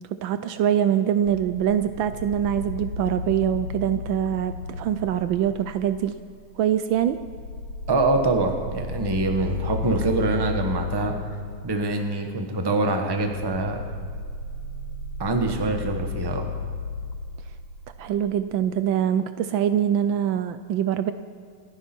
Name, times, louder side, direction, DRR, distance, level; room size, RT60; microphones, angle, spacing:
voice 1, 0.2-6.1 6.6-7.2 18.0-21.1, right 10 dB, 75° right, 11 dB, 1.2 m, -24 dB
sound 1, 1.2-6.4 6.9-18.5, left 4 dB, 70° left, 1.8 m, -34 dB
voice 2, 7.9-11.1 11.6-13.8 15.2-16.5, right 2 dB, 15° right, 4 dB, 0.9 m, -24 dB
27.0 x 10.5 x 4.5 m, 2.1 s
omnidirectional pair, 2.3 m